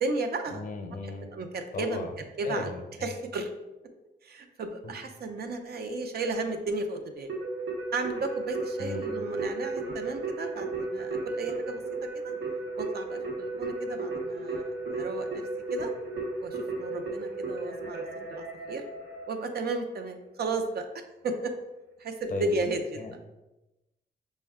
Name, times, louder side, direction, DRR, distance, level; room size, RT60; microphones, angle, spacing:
voice 1, 0.0-0.6 1.3-2.1 2.4-2.7 3.0-3.5 4.2-7.3 7.9-12.3 12.8-15.4 15.7-15.9 16.4-18.0 18.3-18.8 19.3-21.5 22.0-23.0, right 3 dB, 60° right, 6 dB, 0.5 m, -34 dB
voice 2, 0.5-1.3 1.7-2.1 2.4-3.1 4.8-4.9 8.8-9.1 22.3-22.5 23.0-23.1, left 2 dB, 50° left, 5 dB, 0.6 m, -36 dB
Keyboard (musical), 7.3-19.7, right 3 dB, 85° right, 0.9 m, -34 dB
5.2 x 2.2 x 3.5 m, 1.0 s
wide cardioid pair, 120°, 18 cm